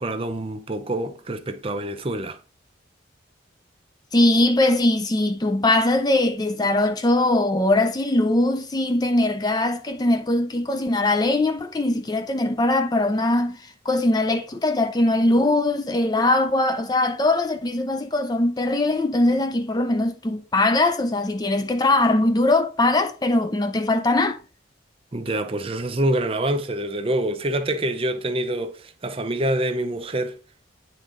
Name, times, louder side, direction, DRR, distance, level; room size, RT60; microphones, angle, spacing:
voice 1, 0.0-2.4 25.1-30.4, right 1 dB, 30° right, 0.6 m, -26 dB
voice 2, 4.1-24.4, left 2 dB, 20° left, 0.4 m, -21 dB
9.3 x 3.7 x 3.7 m
head